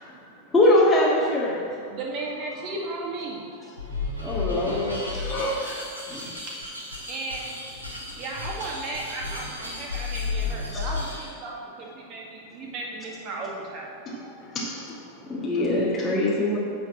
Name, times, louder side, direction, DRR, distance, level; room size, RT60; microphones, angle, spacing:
voice 1, 0.5-1.6 4.2-5.0 6.1-6.3 15.3-16.6, left 1 dB, 10° left, -7 dB, 1.7 m, -22 dB
voice 2, 1.9-3.7 4.2-5.3 7.1-7.5 8.2-13.9, right 2 dB, 35° right, -2 dB, 2.0 m, -35 dB
sound 1, 3.8-11.3, left 3 dB, 85° right, 2.5 m, -33 dB
voice 3, 5.2-5.6 14.0-16.6, equal, 30° left, -5 dB, 1.8 m, -35 dB
8.6 x 5.1 x 7.1 m, 2.3 s
figure-of-eight pair, 90°, 0 cm